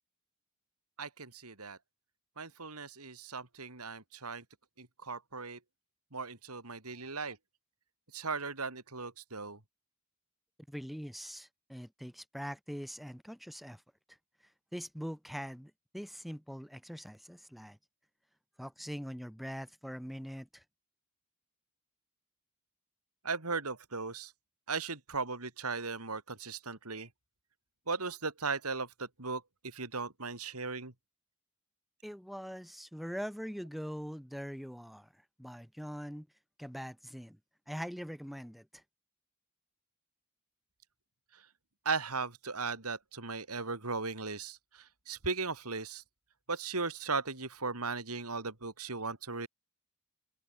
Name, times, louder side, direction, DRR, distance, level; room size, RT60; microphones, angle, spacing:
voice 1, 1.0-1.8 2.4-4.4 4.8-5.6 6.1-7.4 8.1-9.6 23.2-24.3 24.7-27.1 27.9-30.9 41.9-46.0 46.5-49.5, right 4 dB, 80° right, 3.8 m, -37 dB
voice 2, 10.7-13.8 14.7-17.8 18.6-20.6 32.0-36.3 36.6-37.4 37.7-38.8, equal, ahead, 2.8 m, -43 dB
open air
head